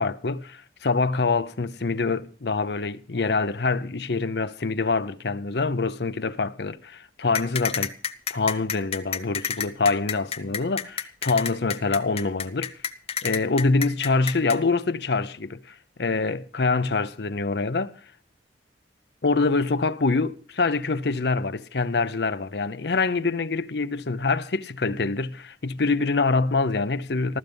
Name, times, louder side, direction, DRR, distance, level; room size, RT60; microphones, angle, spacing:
voice 1, 0.0-7.9 8.3-12.7 13.2-17.9 19.2-27.4, left 3 dB, 65° left, 0.7 m, -25 dB
sound 1, 7.3-14.6, left 8 dB, 35° left, 0.8 m, -29 dB
14.5 x 14.0 x 5.3 m
head